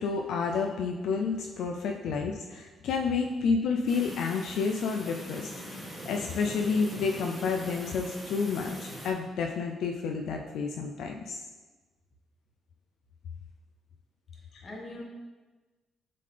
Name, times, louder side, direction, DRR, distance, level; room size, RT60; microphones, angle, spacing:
voice 1, 0.0-11.4 14.5-14.6, left 5 dB, 75° left, 2 dB, 0.4 m, -30 dB
sound 1, 3.9-9.1, equal, ahead, 1.5 m, -42 dB
voice 2, 14.3-15.0, left 2 dB, 30° left, -1 dB, 1.5 m, -43 dB
7.6 x 3.8 x 3.3 m, 1.2 s
cardioid pair, 90°, 0 cm